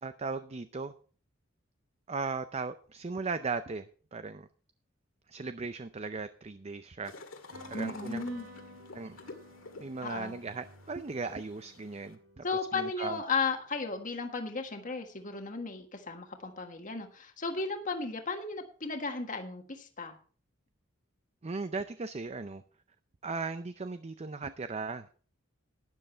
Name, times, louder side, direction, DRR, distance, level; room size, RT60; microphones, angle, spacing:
voice 1, 0.0-0.9 2.1-3.9 4.1-4.5 5.3-7.1 7.7-8.2 8.9-9.2 9.8-12.4 12.7-13.2 21.4-22.6 23.2-25.1, right 4 dB, 30° right, 11 dB, 0.5 m, -37 dB
sound 1, 7.0-12.1, left 3 dB, 75° left, 2.0 m, -50 dB
sound 2, 7.5-14.4, equal, 85° right, 4.4 m, -54 dB
voice 2, 7.7-8.5 10.0-10.3 12.4-20.2, left 4 dB, 40° left, 5 dB, 1.6 m, -35 dB
12.0 x 10.0 x 4.4 m, 0.41 s
head